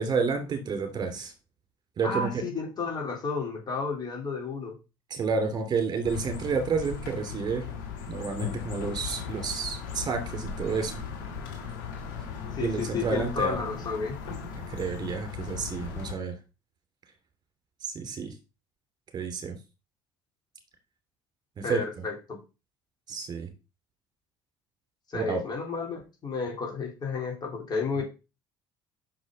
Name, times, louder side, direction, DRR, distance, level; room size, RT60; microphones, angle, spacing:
voice 1, 0.0-1.3 2.0-2.4 5.1-7.7 8.1-11.0 12.6-13.7 14.5-16.4 17.8-18.3 19.1-19.6 21.6-21.8 23.1-23.5 25.1-25.4 28.0-28.1, right 5 dB, 40° right, 6 dB, 2.7 m, -30 dB
voice 2, 2.0-4.8 12.6-14.2 21.6-22.1 25.1-28.0, left 4 dB, 40° left, 0 dB, 3.7 m, -32 dB
sound 1, 6.0-16.1, left 6 dB, 75° left, 2.5 m, -37 dB
6.3 x 6.2 x 5.3 m, 0.29 s
hypercardioid pair, 60°, 11 cm